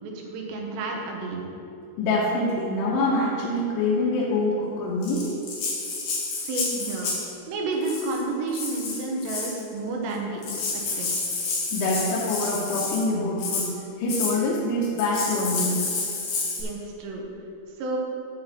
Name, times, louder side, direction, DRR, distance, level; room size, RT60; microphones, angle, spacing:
voice 1, 0.0-1.5 6.4-7.1 7.5-10.4 11.0-11.1 16.6-17.3 17.8-18.0, right 3 dB, 85° right, -1 dB, 3.3 m, -30 dB
voice 2, 2.0-5.3 11.7-13.7 14.0-15.8, left 2 dB, 90° left, -5 dB, 3.0 m, -25 dB
Rattle (instrument), 5.0-7.3 7.8-8.2 8.5-9.6 10.1-10.2 10.4-13.1 13.4-13.7 14.1-14.4 15.0-16.6, left 3 dB, 60° left, 2.8 m, -29 dB
9.3 x 4.2 x 7.3 m, 2.7 s
omnidirectional pair, 4.8 m